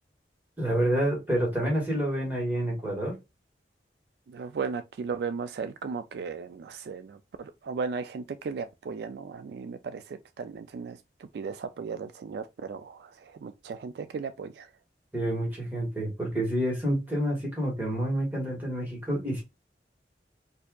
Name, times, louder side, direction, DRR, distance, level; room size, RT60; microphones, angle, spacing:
voice 1, 0.6-3.2 15.1-19.4, right 1 dB, 10° right, 1.7 m, -28 dB
voice 2, 4.3-11.0 11.3-14.7, right 5 dB, 65° right, 0.3 m, -36 dB
4.3 x 2.7 x 2.3 m
head